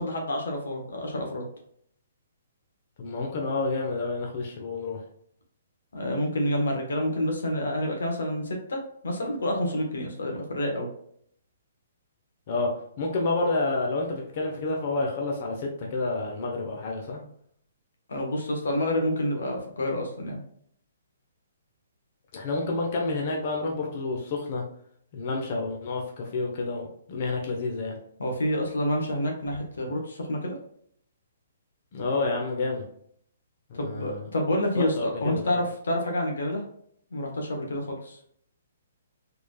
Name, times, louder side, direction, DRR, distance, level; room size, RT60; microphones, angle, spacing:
voice 1, 0.0-1.4 5.9-8.8 9.0-10.9 18.1-20.4 28.2-30.6 33.7-36.6 37.1-38.2, left 1 dB, 80° left, 1 dB, 1.1 m, -28 dB
voice 2, 3.0-5.0 12.5-12.7 13.0-17.2 22.3-24.6 25.1-28.0 31.9-32.8 33.7-34.2 34.8-35.6, left 3 dB, 45° left, 0 dB, 0.9 m, -29 dB
4.1 x 3.3 x 2.3 m, 0.65 s
hypercardioid pair, 145°, 0 cm